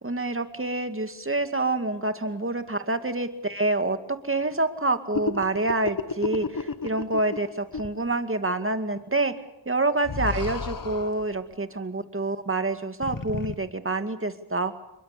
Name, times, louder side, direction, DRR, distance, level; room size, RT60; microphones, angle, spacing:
voice 1, 0.0-9.3 9.7-14.7, right 2 dB, 25° right, 8 dB, 2.2 m, -27 dB
sound 1, 5.1-7.5 7.7-7.9 10.0-11.3 13.0-13.5, left 5 dB, 45° left, 1.5 m, -31 dB
27.5 x 23.0 x 6.8 m, 0.89 s
wide cardioid pair, 75°, 47 cm